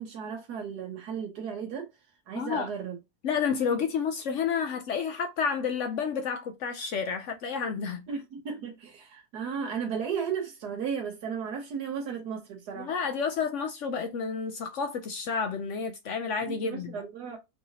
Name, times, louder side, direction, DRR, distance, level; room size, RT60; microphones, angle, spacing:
voice 1, 0.0-1.9 2.3-3.0 8.1-12.9 16.4-17.4, right 6 dB, 80° right, 1.4 m, -35 dB
voice 2, 2.4-2.7 3.2-8.1 12.8-16.9, left 6 dB, 65° left, 0.8 m, -30 dB
4.6 x 2.8 x 2.8 m
omnidirectional pair, 1.7 m